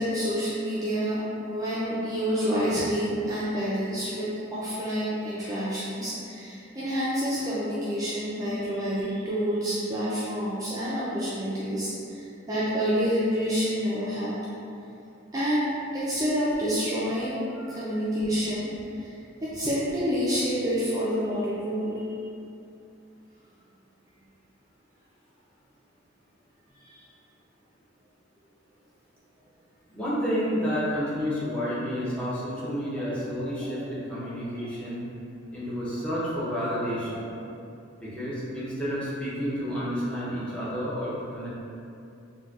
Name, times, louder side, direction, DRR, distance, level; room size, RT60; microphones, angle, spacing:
voice 1, 0.0-14.4 15.3-19.1 19.4-22.1 26.8-27.0 31.5-31.6 32.2-32.3 33.0-33.1 37.1-37.2, equal, 20° right, -10 dB, 0.4 m, -28 dB
voice 2, 29.9-35.0 35.5-37.2 38.0-41.5, equal, 5° left, -11 dB, 0.7 m, -30 dB
4.1 x 2.2 x 2.3 m, 2.6 s
head